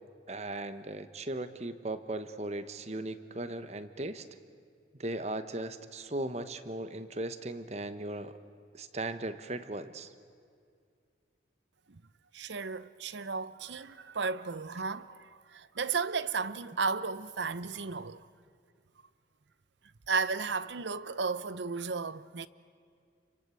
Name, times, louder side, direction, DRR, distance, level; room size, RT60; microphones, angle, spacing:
voice 1, 0.3-4.2 5.0-8.3 8.7-10.1, right 1 dB, 35° right, 1.1 m, -37 dB
voice 2, 12.3-18.3 20.1-22.5, right 4 dB, 75° right, 0.8 m, -34 dB
29.0 x 24.0 x 8.4 m
head